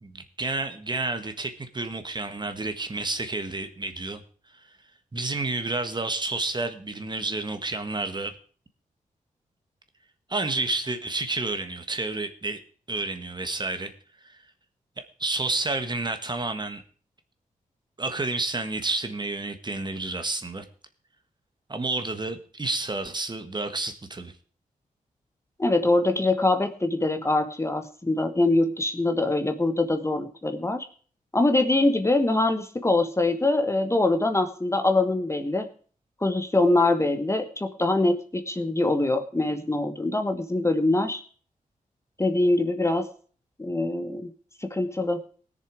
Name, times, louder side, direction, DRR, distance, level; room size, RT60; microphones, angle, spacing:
voice 1, 0.0-4.2 4.5-4.6 5.1-8.3 10.3-12.6 12.9-13.9 14.2-14.4 15.0-16.8 18.0-20.6 21.7-24.3, right 2 dB, 30° right, 8 dB, 1.6 m, -30 dB
voice 2, 25.6-30.9 31.3-35.7 36.2-41.2 42.2-43.1 43.6-44.3 44.6-45.2, left 2 dB, 20° left, 7 dB, 1.3 m, -23 dB
19.0 x 6.9 x 4.9 m, 0.43 s
cardioid pair, 75°, 14 cm